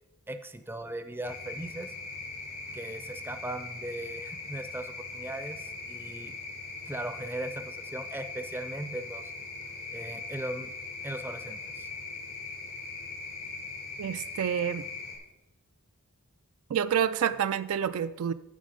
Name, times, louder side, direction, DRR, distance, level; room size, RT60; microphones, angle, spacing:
voice 1, 0.3-1.9 2.7-6.4 6.9-9.3 9.9-10.7 11.0-11.9, right 1 dB, 10° right, 10 dB, 0.5 m, -38 dB
sound 1, 1.2-15.2, left 3 dB, 90° left, 2.7 m, -40 dB
voice 2, 14.0-14.9 16.7-18.3, right 8 dB, 75° right, 12 dB, 0.4 m, -28 dB
9.1 x 7.4 x 5.0 m, 0.94 s
head